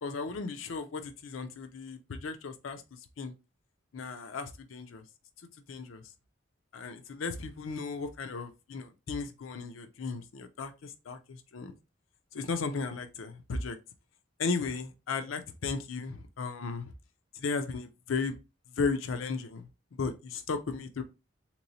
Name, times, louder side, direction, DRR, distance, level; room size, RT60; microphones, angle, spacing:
voice 1, 0.0-3.3 3.9-5.0 5.7-6.0 6.7-11.7 12.3-13.8 14.4-16.9 17.3-18.4 18.8-19.7 20.0-21.0, left 4 dB, 85° left, 0.5 m, -35 dB
3.7 x 3.0 x 2.6 m
head